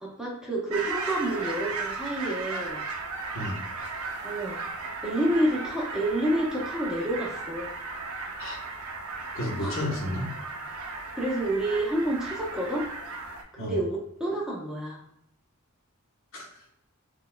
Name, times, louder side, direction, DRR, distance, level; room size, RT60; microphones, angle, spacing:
voice 1, 0.0-2.8 4.2-4.7 5.0-7.7 9.6-9.7 11.1-12.9 13.5-15.0, right 1 dB, 5° right, -4 dB, 0.8 m, -29 dB
sound 1, 0.7-13.4, right 3 dB, 85° right, 0.7 m, -36 dB
voice 2, 9.3-10.3 13.6-13.8 16.3-16.7, left 1 dB, 65° left, -3 dB, 1.1 m, -32 dB
4.4 x 2.3 x 2.2 m, 0.74 s
head